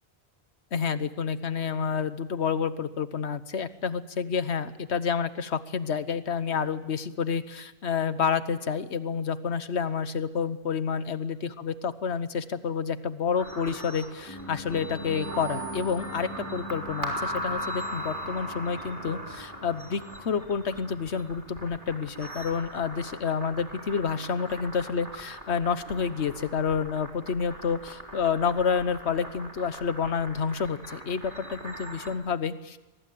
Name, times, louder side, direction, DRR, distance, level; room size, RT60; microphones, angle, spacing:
voice 1, 0.7-32.8, left 6 dB, 80° left, 13 dB, 1.3 m, -29 dB
sound 1, 13.4-32.1, right 1 dB, 45° right, 3.7 m, -39 dB
Piano, 14.3-24.3 24.6-24.7, left 1 dB, 20° left, 3.3 m, -44 dB
23.5 x 19.0 x 8.5 m, 1.1 s
omnidirectional pair, 1.1 m